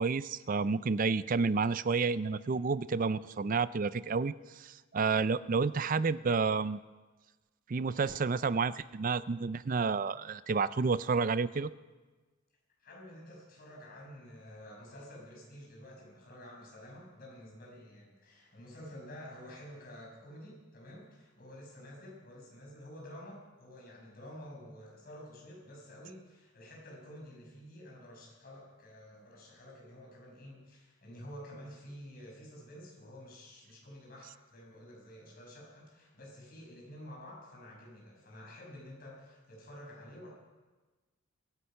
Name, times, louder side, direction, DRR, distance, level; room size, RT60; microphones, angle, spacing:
voice 1, 0.0-6.8 7.7-11.7, right 4 dB, 40° right, 16 dB, 0.4 m, -30 dB
voice 2, 12.8-40.3, equal, 45° left, -2 dB, 5.9 m, -50 dB
23.0 x 9.9 x 5.7 m, 1.3 s
head